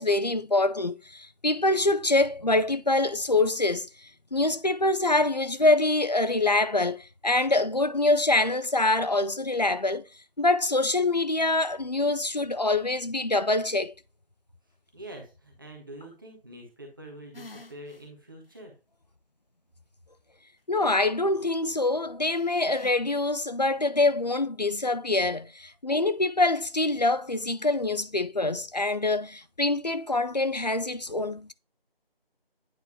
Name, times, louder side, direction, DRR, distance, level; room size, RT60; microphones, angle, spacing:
voice 1, 0.0-3.9 4.3-10.0 10.4-13.9 20.7-31.5, left 2 dB, 45° left, 0.4 m, -25 dB
voice 2, 14.9-18.7, right 1 dB, 20° right, 1.5 m, -45 dB
sound 1, 17.3-18.1 18.5-18.6 22.3-22.9, left 2 dB, 70° left, 1.1 m, -48 dB
9.3 x 4.3 x 2.7 m
figure-of-eight pair, 175°, 30 cm